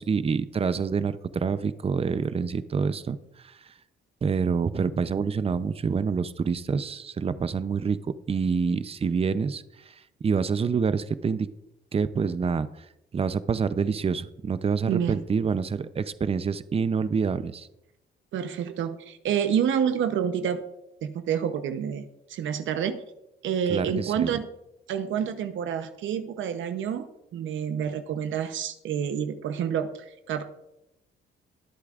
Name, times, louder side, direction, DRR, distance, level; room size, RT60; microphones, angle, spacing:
voice 1, 0.0-3.2 4.2-8.0 8.3-9.9 10.2-11.5 11.9-12.8 13.1-17.7 23.7-24.3, right 5 dB, 30° right, 13 dB, 0.6 m, -27 dB
voice 2, 14.9-15.2 18.3-20.6 21.0-23.0 23.4-24.5 24.9-27.1 27.3-30.4, right 8 dB, 75° right, 9 dB, 0.9 m, -28 dB
22.5 x 8.2 x 2.5 m, 0.87 s
cardioid pair, 90°, 20 cm